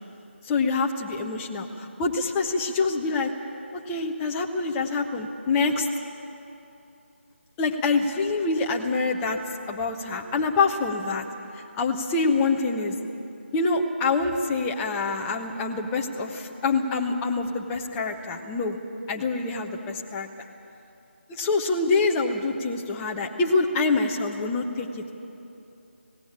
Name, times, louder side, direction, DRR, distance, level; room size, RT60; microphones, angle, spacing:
voice 1, 0.4-3.3 3.7-5.9 7.6-9.4 9.7-11.2 11.5-13.0 13.5-18.8 19.1-20.3 21.3-24.9, left 3 dB, 10° left, 1 dB, 0.8 m, -26 dB
17.5 x 17.0 x 8.8 m, 2.8 s
figure-of-eight pair, 165°, 7 cm